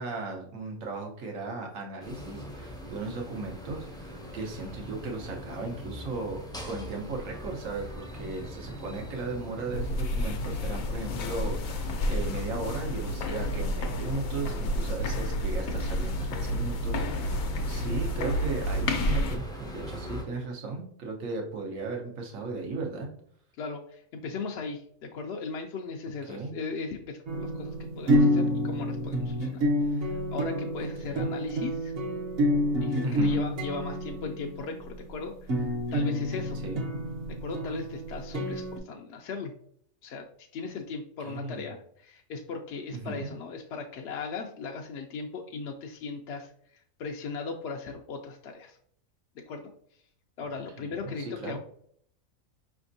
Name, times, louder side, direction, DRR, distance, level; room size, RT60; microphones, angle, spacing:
voice 1, 0.0-23.1 26.3-26.5 30.8-31.3 33.0-33.4 36.6-36.9 41.2-41.6 42.9-43.3 50.8-51.6, right 3 dB, 80° right, 1 dB, 1.3 m, -36 dB
sound 1, 2.0-20.2, equal, 5° left, 0.4 m, -41 dB
sound 2, 9.7-19.4, left 1 dB, 90° left, 1.1 m, -30 dB
voice 2, 23.6-31.9 32.8-36.6 37.3-39.5 40.0-40.2 40.5-48.8 49.5-49.7 50.4-51.6, left 4 dB, 65° left, 2 dB, 0.7 m, -38 dB
sound 3, 27.3-38.8, equal, 55° right, 0.8 m, -28 dB
5.1 x 3.4 x 2.6 m, 0.64 s
omnidirectional pair, 1.4 m